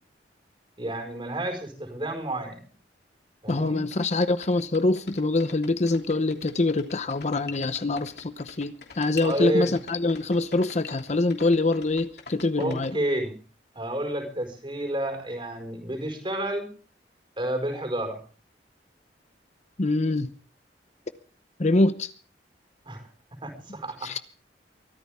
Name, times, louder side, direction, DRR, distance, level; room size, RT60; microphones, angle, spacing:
voice 1, 0.8-2.6 3.4-3.8 9.2-9.7 12.6-13.4 13.7-16.7 17.4-18.2 22.9-23.1 23.4-24.1, right 1 dB, 30° right, 4.9 m, -30 dB
voice 2, 3.5-13.0 19.8-20.3 21.6-22.1 24.0-24.2, left 2 dB, 40° left, 0.8 m, -24 dB
sound 1, 3.6-3.7 3.9-12.9, left 4 dB, 65° left, 3.1 m, -43 dB
24.0 x 13.5 x 3.6 m
head